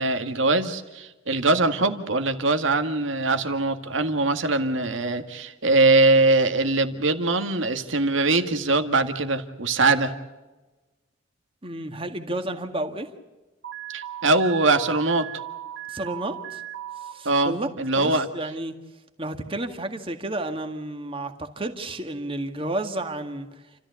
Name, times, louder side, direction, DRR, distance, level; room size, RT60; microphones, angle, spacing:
voice 1, 0.0-10.1 13.9-15.3 17.3-18.3, right 2 dB, 75° right, 8 dB, 1.9 m, -22 dB
voice 2, 11.6-13.1 15.9-16.6 17.0-17.7 18.0-18.7 19.2-23.5, right 1 dB, 25° right, 6 dB, 1.9 m, -31 dB
Alarm, 13.6-17.1, right 12 dB, 50° right, 3.0 m, -37 dB
29.5 x 14.0 x 8.3 m, 1.1 s
head